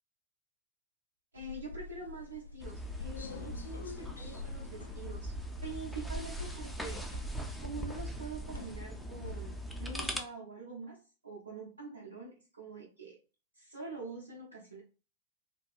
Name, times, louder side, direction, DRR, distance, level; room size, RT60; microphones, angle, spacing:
voice 1, 1.3-5.3 5.6-7.0 7.6-13.2 13.5-14.8, right 3 dB, 75° right, -3 dB, 0.5 m, -45 dB
sound 1, 1.4-9.6, left 4 dB, 75° left, 0.3 m, -47 dB
sound 2, 2.6-10.2, right 1 dB, 5° left, 0.4 m, -41 dB
2.7 x 2.2 x 2.3 m, 0.35 s
figure-of-eight pair, 90°, 0 cm